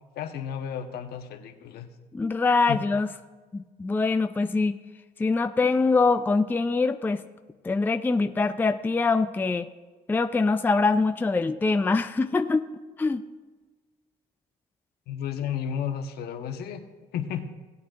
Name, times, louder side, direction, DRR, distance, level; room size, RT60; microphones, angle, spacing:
voice 1, 0.1-1.9 2.7-2.8 15.1-16.8 17.1-17.5, left 8 dB, 70° left, 6 dB, 1.1 m, -32 dB
voice 2, 2.1-3.1 3.5-4.8 5.2-7.2 7.6-9.7 10.1-12.7 13.0-13.2, left 3 dB, 10° left, 8 dB, 0.4 m, -24 dB
17.5 x 8.4 x 2.5 m, 1.3 s
cardioid pair, 110°, 17 cm